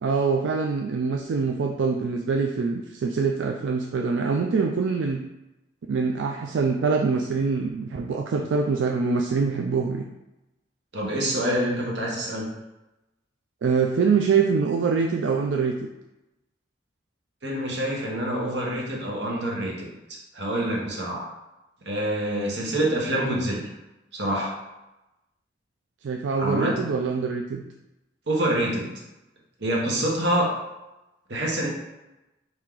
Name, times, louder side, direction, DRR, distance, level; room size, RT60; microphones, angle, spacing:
voice 1, 0.0-5.2 5.9-10.0 13.6-15.8 26.0-27.6, right 5 dB, 85° right, 2 dB, 0.4 m, -24 dB
voice 2, 10.9-12.5 17.4-21.2 21.8-23.7 24.1-24.5 26.4-26.7 28.3-29.0 29.6-30.5 31.3-31.7, right 1 dB, 65° right, -2 dB, 1.2 m, -26 dB
4.4 x 2.8 x 3.7 m, 0.98 s
head